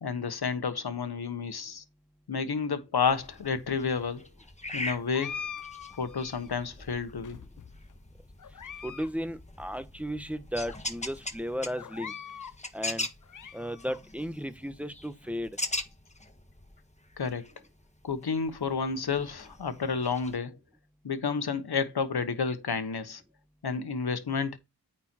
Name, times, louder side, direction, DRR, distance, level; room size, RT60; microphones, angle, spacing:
voice 1, 0.0-1.8 2.3-4.3 4.7-5.4 6.0-7.4 17.2-17.5 18.0-20.6 21.0-23.2 23.6-24.6, left 5 dB, 90° left, 1.2 m, -30 dB
sound 1, 3.1-20.4, left 2 dB, 20° left, 1.5 m, -42 dB
sound 2, 5.1-6.6 7.2-7.9 8.4-9.1 9.4-9.5 10.2-10.3 10.7-10.8 11.8-12.6 13.0-14.0, left 7 dB, 55° left, 0.6 m, -42 dB
voice 2, 8.8-12.1 12.7-13.1 13.5-15.5, equal, 5° right, 1.1 m, -35 dB
8.9 x 4.4 x 4.4 m
cardioid pair, 40°, 38 cm